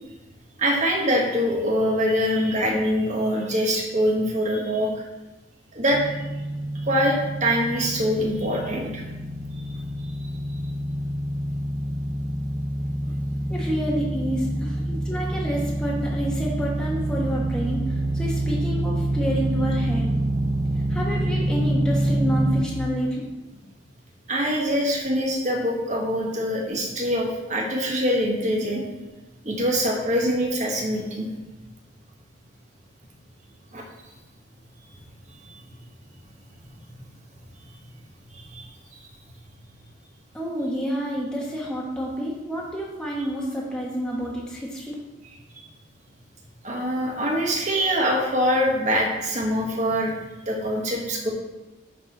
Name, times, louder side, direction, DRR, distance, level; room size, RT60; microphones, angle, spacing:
voice 1, 0.6-5.0 5.7-6.0 6.8-9.0 9.6-9.7 24.3-28.8 29.4-31.3 33.7-33.8 38.5-38.7 46.6-50.1 50.4-51.3, equal, 35° right, -1 dB, 1.5 m, -24 dB
sound 1, 5.9-22.7, right 1 dB, 15° right, 0.4 m, -27 dB
voice 2, 13.5-20.1 20.9-23.2 40.3-44.9, equal, 5° left, -4 dB, 1.1 m, -29 dB
11.0 x 4.2 x 4.2 m, 1.1 s
head